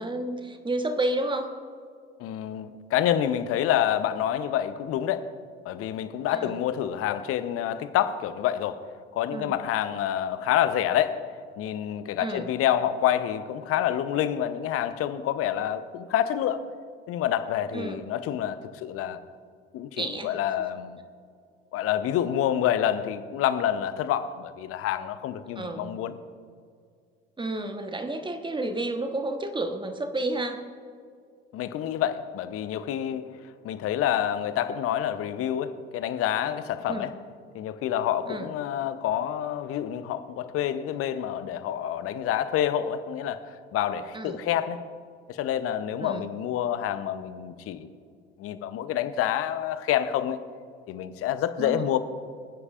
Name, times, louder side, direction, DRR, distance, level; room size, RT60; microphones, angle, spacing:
voice 1, 0.0-1.5 6.3-6.5 9.3-9.5 12.2-12.5 17.7-18.0 20.0-20.4 25.6-25.9 27.4-30.6 36.9-37.1 38.3-38.5 44.1-44.4 46.0-46.3 51.6-51.8, right 2 dB, 15° right, 1.2 m, -31 dB
voice 2, 2.2-5.3 5.6-8.8 9.1-11.3 11.6-16.6 17.1-19.2 19.7-21.0 21.7-26.2 31.5-33.2 33.6-37.1 37.5-44.8 45.3-47.9 48.4-50.4 50.9-52.0, left 10 dB, 45° left, 0.8 m, -27 dB
24.5 x 9.7 x 2.5 m
figure-of-eight pair, 60°, 31 cm